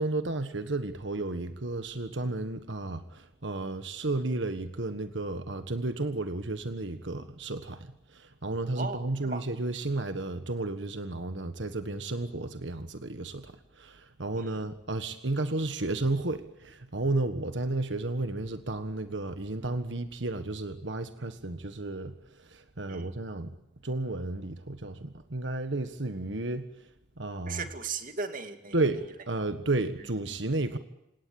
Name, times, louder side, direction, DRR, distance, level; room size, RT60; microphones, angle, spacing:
voice 1, 0.0-13.5 13.8-22.1 22.4-23.6 23.8-26.7 27.2-27.7 28.7-30.8, right 2 dB, 85° right, 9 dB, 1.5 m, -32 dB
voice 2, 8.8-9.4 14.4-14.5 22.9-23.1 27.5-28.7, right 4 dB, 45° right, 7 dB, 2.4 m, -37 dB
27.5 x 18.0 x 8.8 m, 0.88 s
head